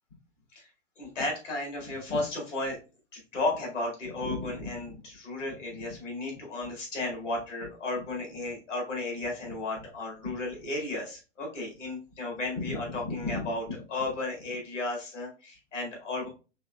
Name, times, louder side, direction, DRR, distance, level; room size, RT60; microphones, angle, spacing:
voice 1, 1.0-2.8 3.1-16.3, left 2 dB, 70° left, -1 dB, 2.2 m, -33 dB
4.5 x 3.5 x 2.3 m, 0.32 s
figure-of-eight pair, 105°, 38 cm